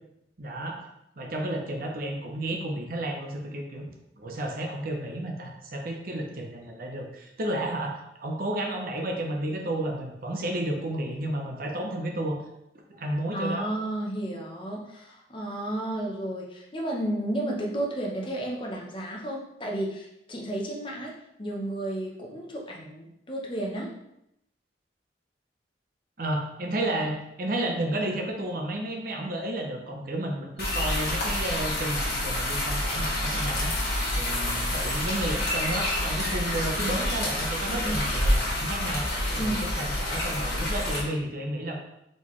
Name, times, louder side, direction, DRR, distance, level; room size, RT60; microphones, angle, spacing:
voice 1, 0.4-0.8 1.2-3.8 4.2-12.4 12.9-13.7 26.2-33.7 34.2-39.0 39.3-41.8, right 1 dB, 50° right, 1 dB, 0.8 m, -32 dB
voice 2, 13.3-23.9 37.7-38.0 39.4-39.6, right 1 dB, 30° left, -1 dB, 0.8 m, -32 dB
sound 1, 30.6-41.0, left 1 dB, 65° left, 1.3 m, -28 dB
4.1 x 3.8 x 3.1 m, 0.82 s
head